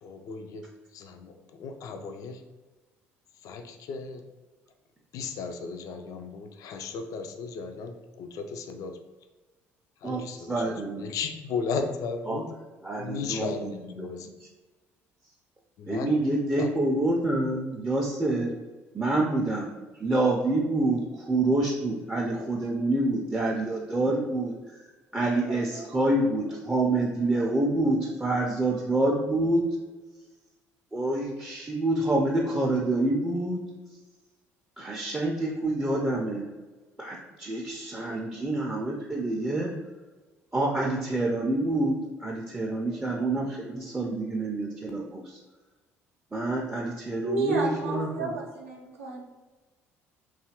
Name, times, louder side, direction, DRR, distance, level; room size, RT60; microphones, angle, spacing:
voice 1, 0.0-0.7 0.9-2.4 3.4-4.2 5.1-8.9 10.0-12.5 13.0-14.3 15.8-16.1 16.6-16.7, left 5 dB, 50° left, 6 dB, 0.3 m, -35 dB
voice 2, 10.0-11.1 12.3-12.4 12.8-14.3 15.9-18.5 18.9-19.7 20.0-24.8 25.1-29.6 30.9-33.6 34.8-36.4 37.0-39.7 40.5-41.9 42.2-45.4 46.3-48.3, right 2 dB, 15° right, -2 dB, 0.4 m, -27 dB
voice 3, 47.2-49.3, right 3 dB, 80° right, -1 dB, 0.5 m, -31 dB
2.7 x 2.4 x 2.8 m, 1.3 s
figure-of-eight pair, 50°, 7 cm